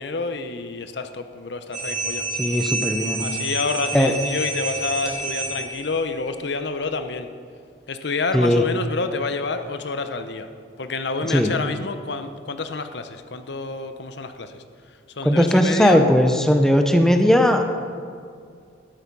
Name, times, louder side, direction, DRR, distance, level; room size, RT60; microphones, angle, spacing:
voice 1, 0.0-2.2 3.2-7.3 7.9-10.5 10.8-14.6 15.2-16.0, left 4 dB, 60° left, 9 dB, 0.8 m, -28 dB
sound 1, 1.7-6.0, right 2 dB, 30° right, 2.7 m, -29 dB
voice 2, 2.4-3.3 3.9-4.1 8.3-8.6 11.3-11.5 15.2-17.6, equal, 5° left, 5 dB, 0.7 m, -18 dB
12.5 x 12.0 x 5.3 m, 2.3 s
head